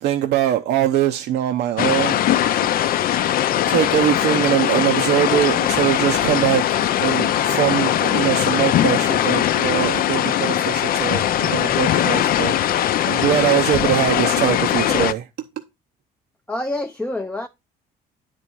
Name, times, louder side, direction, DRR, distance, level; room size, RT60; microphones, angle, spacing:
voice 1, 0.0-2.8 3.7-15.5, right 12 dB, 75° right, 0.7 m, -22 dB
sound 1, 1.8-15.1, left 11 dB, 60° left, 0.5 m, -20 dB
voice 2, 16.5-17.5, left 1 dB, 10° left, 0.5 m, -26 dB
9.7 x 4.3 x 4.6 m
cardioid pair, 110°, 17 cm